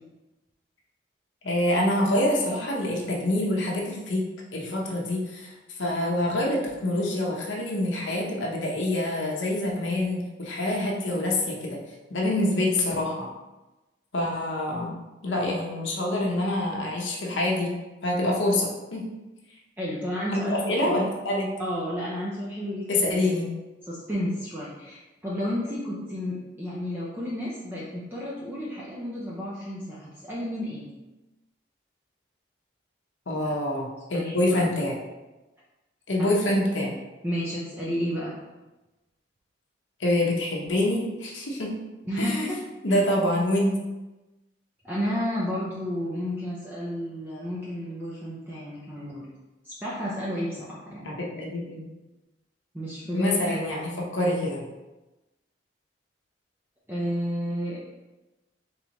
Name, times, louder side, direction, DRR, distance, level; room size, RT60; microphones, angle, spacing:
voice 1, 1.4-4.2 4.5-11.8 12.1-13.3 14.1-14.9 15.2-17.7 18.0-19.0 20.3-21.5 22.9-23.5 33.3-35.0 36.1-37.0 40.0-41.7 42.2-42.4 42.8-43.8 51.0-51.9 53.1-54.7, left 1 dB, 80° left, -2 dB, 0.9 m, -26 dB
voice 2, 19.8-21.1 21.6-23.2 23.9-30.9 33.3-33.6 34.1-34.6 36.2-36.5 37.2-38.3 42.0-42.6 42.9-43.0 44.8-49.3 49.6-51.2 52.7-53.7 56.9-57.8, equal, 10° right, -7 dB, 0.6 m, -32 dB
4.0 x 3.5 x 3.0 m, 1.1 s
head